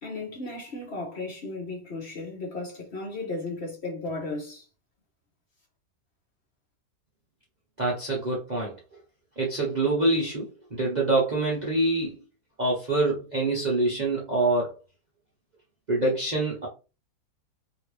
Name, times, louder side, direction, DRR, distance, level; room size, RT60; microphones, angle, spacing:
voice 1, 0.0-4.6, left 2 dB, 45° left, 1.3 m, -35 dB
voice 2, 7.8-8.7 9.4-12.1 12.6-14.7 15.9-16.7, right 2 dB, 35° right, 0.8 m, -25 dB
3.1 x 2.8 x 3.1 m
omnidirectional pair, 1.8 m